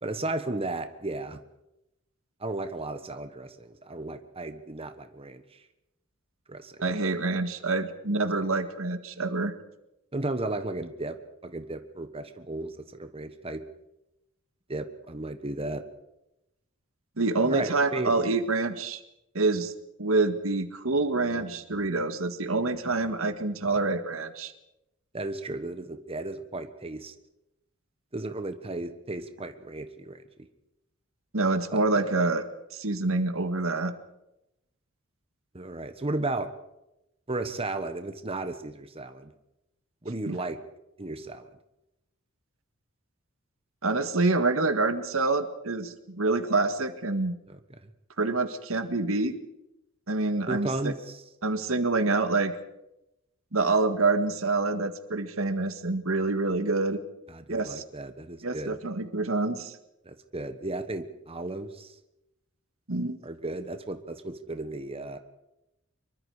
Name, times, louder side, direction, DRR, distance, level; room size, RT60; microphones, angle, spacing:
voice 1, 0.0-1.4 2.4-5.6 6.5-6.8 10.1-11.2 11.4-13.6 14.7-15.8 17.3-18.3 23.7-23.8 25.1-27.1 28.1-30.5 31.7-31.8 35.5-36.5 37.3-39.3 40.0-40.6 41.0-41.5 47.5-47.9 50.5-51.2 57.3-58.8 60.0-61.9 63.2-65.2, right 2 dB, 30° right, 8 dB, 1.3 m, -34 dB
voice 2, 6.8-9.5 17.2-19.0 19.3-19.7 20.0-24.5 31.3-32.4 32.7-33.9 40.3-40.4 43.8-47.3 48.2-49.3 50.1-50.9 51.4-52.5 53.5-57.0 57.5-57.8 58.4-59.8 62.9-63.2, right 3 dB, 85° right, 9 dB, 1.8 m, -26 dB
25.0 x 23.0 x 5.0 m, 0.90 s
head